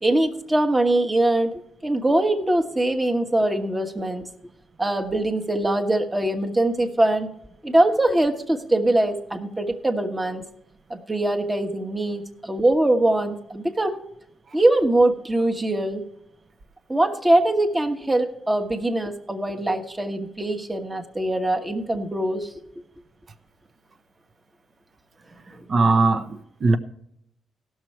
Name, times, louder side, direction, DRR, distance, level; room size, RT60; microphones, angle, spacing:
voice 1, 0.0-4.3 4.8-7.3 7.6-10.4 10.9-14.0 14.5-16.1 16.9-22.5 25.5-25.7, right 1 dB, 20° right, 3 dB, 1.2 m, -22 dB
voice 2, 25.7-26.8, right 3 dB, 50° right, 9 dB, 0.9 m, -20 dB
16.5 x 6.3 x 4.4 m, 0.78 s
cardioid pair, 75°, 0 cm